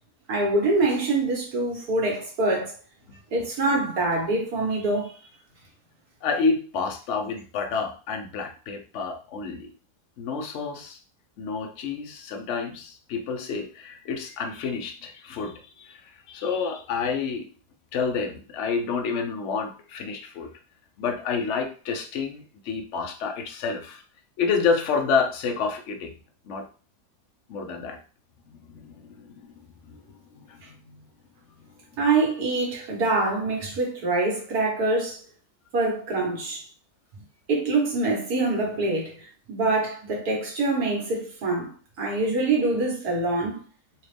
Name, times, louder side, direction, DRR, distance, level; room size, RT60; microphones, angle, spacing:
voice 1, 0.3-2.7 3.3-5.1 32.0-35.2 35.7-36.6 37.5-39.1 39.5-41.7 42.0-43.6, right 2 dB, 75° right, 1.8 m, -25 dB
voice 2, 6.2-9.7 10.2-11.0 11.4-17.5 17.9-20.5 21.0-24.0 24.4-26.1 26.4-26.7 27.5-28.0 28.5-29.5 29.8-31.1, left 5 dB, 60° left, 0.9 m, -29 dB
4.1 x 2.5 x 3.3 m
omnidirectional pair, 1.7 m